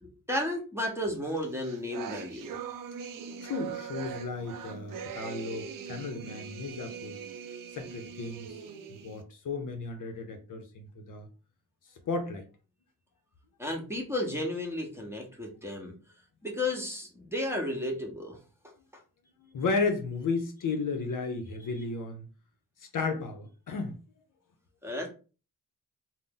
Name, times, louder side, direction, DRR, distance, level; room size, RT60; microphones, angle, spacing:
voice 1, 0.0-2.6 13.6-15.9 16.4-18.4 24.8-25.1, left 1 dB, 5° right, 1.0 m, -33 dB
sound 1, 1.3-9.2, right 7 dB, 60° right, 0.5 m, -41 dB
voice 2, 3.4-7.2 7.7-8.5 9.0-11.3 12.1-12.4 19.5-22.3 22.9-24.0, left 4 dB, 55° left, 0.6 m, -33 dB
2.5 x 2.0 x 3.7 m
supercardioid pair, 50°, 38 cm